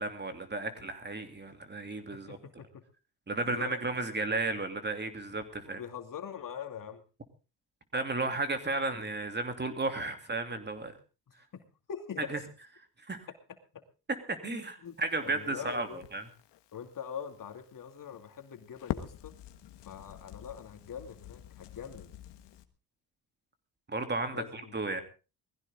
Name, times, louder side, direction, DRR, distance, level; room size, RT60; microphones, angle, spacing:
voice 1, 0.0-2.4 3.3-5.8 7.9-10.9 12.3-12.4 13.1-13.2 14.3-16.2 23.9-25.0, right 2 dB, 25° right, 7 dB, 2.8 m, -34 dB
voice 2, 2.1-2.8 3.4-3.8 5.7-7.0 11.3-12.3 13.7-13.8 14.4-15.0 15.2-16.1 16.7-19.3 19.8-22.1 24.3-24.7, left 8 dB, 50° left, 6 dB, 2.5 m, -43 dB
Crackle, 14.8-22.6, left 12 dB, 80° left, 1.6 m, -46 dB
20.5 x 15.5 x 3.7 m, 0.33 s
cardioid pair, 80°, 42 cm